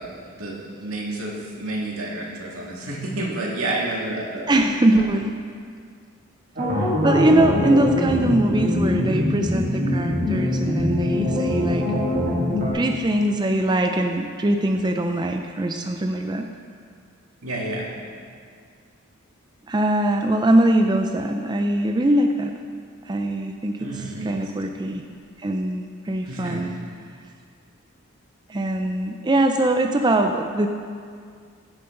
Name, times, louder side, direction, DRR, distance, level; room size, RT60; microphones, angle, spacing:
voice 1, 0.0-4.5 17.4-17.9 23.8-24.4 26.3-26.6, right 2 dB, 85° right, -3 dB, 2.1 m, -30 dB
voice 2, 4.5-5.3 6.8-11.9 12.7-16.5 19.7-22.5 23.0-25.0 25.4-27.1 28.5-30.7, right 1 dB, 20° right, 4 dB, 0.4 m, -22 dB
sound 1, 6.6-12.7, left 1 dB, 40° right, 2.3 m, -23 dB
16.0 x 7.6 x 3.8 m, 2.1 s
head